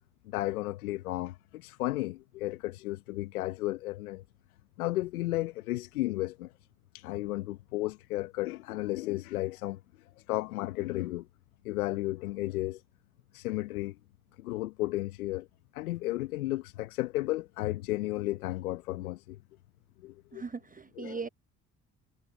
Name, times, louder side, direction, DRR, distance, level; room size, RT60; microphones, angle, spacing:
voice 1, 0.2-4.2 4.8-6.5 6.9-9.8 10.3-11.3 11.6-12.8 13.3-14.0 14.4-15.5 15.7-19.4 20.0-20.4 21.0-21.3, left 17 dB, 85° left, 1.1 m, -33 dB
voice 2, 20.3-21.3, right 4 dB, 20° right, 0.8 m, -39 dB
hypercardioid pair, 50°, 42 cm